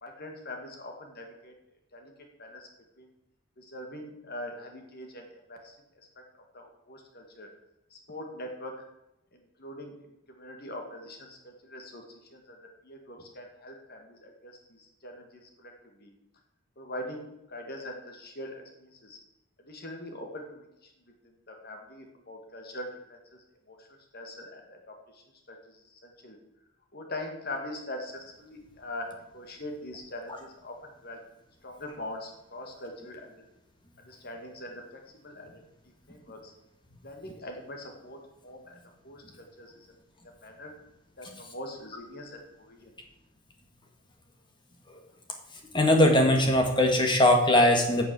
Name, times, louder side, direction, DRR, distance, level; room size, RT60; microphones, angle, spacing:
voice 1, 0.0-1.5 1.9-2.1 2.4-2.7 3.0-3.1 3.6-5.8 6.2-6.3 6.5-7.5 7.9-8.8 9.3-12.6 12.8-15.7 16.0-16.1 16.8-19.2 19.7-20.9 21.2-23.9 24.1-26.4 26.9-31.2 31.6-33.5 34.0-35.5 36.1-36.5 37.0-38.8 39.0-39.9 40.2-40.7 41.2-42.9, left 1 dB, 45° left, 3 dB, 2.2 m, -42 dB
voice 2, 45.7-48.1, left 1 dB, 20° left, 3 dB, 1.8 m, -20 dB
8.8 x 7.1 x 8.4 m, 0.90 s
head